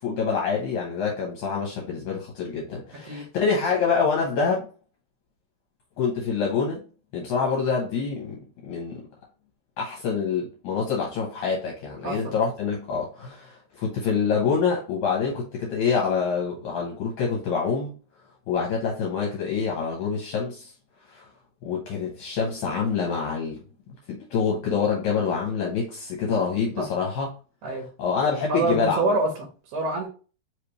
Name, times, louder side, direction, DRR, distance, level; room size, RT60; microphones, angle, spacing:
voice 1, 0.0-4.7 6.0-6.8 7.1-9.0 9.8-17.9 18.5-20.7 21.1-21.3 21.6-23.6 24.1-27.3 28.0-29.1, left 5 dB, 70° left, -2 dB, 2.2 m, -26 dB
voice 2, 28.5-30.1, right 2 dB, 70° right, -1 dB, 2.2 m, -26 dB
4.9 x 3.3 x 3.0 m, 0.36 s
omnidirectional pair, 3.8 m